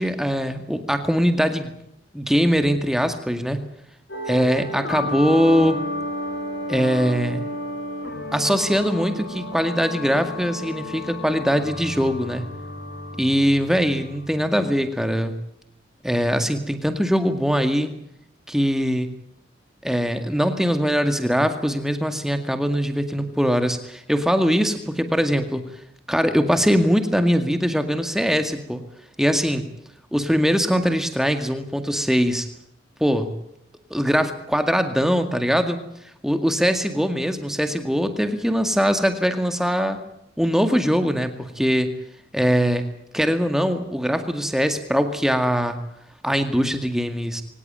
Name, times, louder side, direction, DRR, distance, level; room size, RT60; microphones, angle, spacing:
voice 1, 0.0-1.7 2.1-3.6 4.3-5.8 6.7-7.4 8.3-12.5 13.2-15.4 16.0-17.9 18.5-19.1 19.8-25.6 26.1-28.8 29.2-29.7 30.1-32.5 33.0-33.4 33.9-35.8 36.2-40.0 40.4-41.9 42.3-42.9 43.1-45.9 46.2-47.4, equal, 5° right, 7 dB, 2.0 m, -21 dB
sound 1, 4.1-15.1, left 1 dB, 65° left, 8.0 m, -32 dB
23.5 x 18.0 x 9.0 m, 0.76 s
head